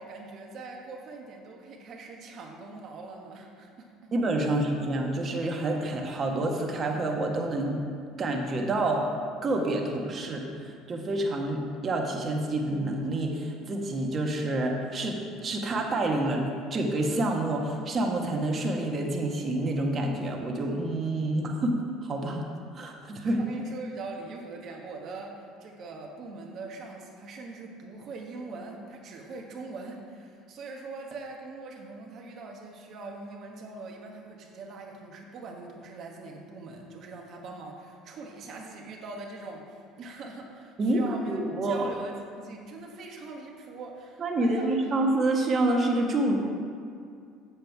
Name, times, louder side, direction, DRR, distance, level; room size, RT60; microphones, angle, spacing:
voice 1, 0.0-4.1 23.4-44.9, right 3 dB, 55° right, 1 dB, 1.2 m, -42 dB
voice 2, 4.1-7.8 8.2-9.1 9.4-22.5 22.7-23.4 40.8-41.0 41.3-41.9 44.2-46.4, right 2 dB, 40° right, 1 dB, 1.4 m, -28 dB
7.4 x 7.3 x 4.7 m, 2.3 s
hypercardioid pair, 75°, 0 cm